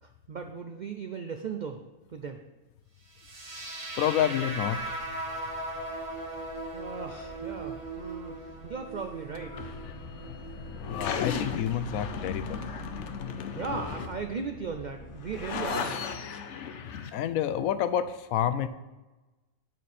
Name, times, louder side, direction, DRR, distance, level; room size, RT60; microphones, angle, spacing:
voice 1, 0.0-1.8 2.1-2.4 6.7-9.7 13.5-16.0, right 5 dB, 70° right, 5 dB, 0.4 m, -37 dB
sound 1, 3.2-11.2, right 2 dB, 25° right, 1.0 m, -39 dB
voice 2, 4.0-5.0 10.9-12.6 17.1-18.7, left 10 dB, 85° left, 12 dB, 1.0 m, -28 dB
sound 2, 4.6-15.8, right 3 dB, 50° left, 2.4 m, -48 dB
sound 3, 9.3-17.1, left 7 dB, 65° left, 0.9 m, -36 dB
12.5 x 4.5 x 4.2 m, 1.1 s
omnidirectional pair, 1.4 m